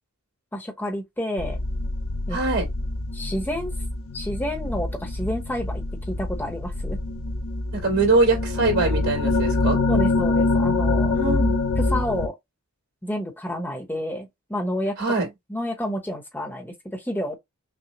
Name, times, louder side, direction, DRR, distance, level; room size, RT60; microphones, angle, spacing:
voice 1, 0.5-1.6 2.3-2.4 3.1-3.7 4.1-7.0 9.9-11.2 11.8-12.4 13.0-15.0 15.5-17.4, left 1 dB, 10° left, 0.9 m, -29 dB
Long drone chimes, 1.4-12.3, left 2 dB, 65° left, 0.6 m, -25 dB
voice 2, 2.3-2.7 7.7-9.8 11.1-11.6 15.0-15.3, right 3 dB, 80° right, 2.7 m, -22 dB
5.8 x 2.0 x 2.9 m
head